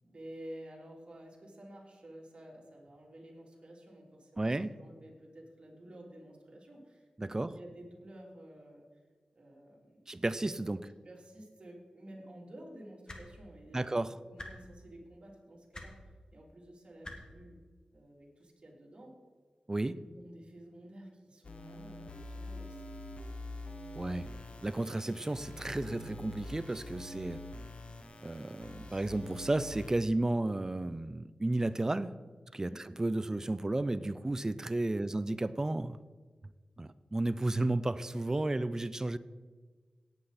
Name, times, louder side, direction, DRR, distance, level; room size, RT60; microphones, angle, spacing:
voice 1, 0.0-9.0 9.3-10.0 10.6-10.7 11.0-13.8 14.1-16.0 16.3-17.6 17.9-19.2 20.0-23.2 23.6-24.0 32.6-32.8 34.9-35.2, right 1 dB, 50° right, -2 dB, 3.3 m, -52 dB
voice 2, 4.4-4.8 7.2-7.5 10.1-10.8 13.7-14.1 19.7-20.0 23.9-24.3 24.6-27.4 28.2-32.1 32.5-36.0 36.8-39.2, right 2 dB, 25° right, 15 dB, 0.5 m, -33 dB
sound 1, 13.1-13.2 14.4-14.5 15.7-15.9 17.0-17.2 18.4-18.5, left 2 dB, 35° left, 1.9 m, -44 dB
sound 2, 21.4-29.9, left 2 dB, 60° left, 1.1 m, -45 dB
17.5 x 8.8 x 4.2 m, 1.5 s
wide cardioid pair, 90°, 2 cm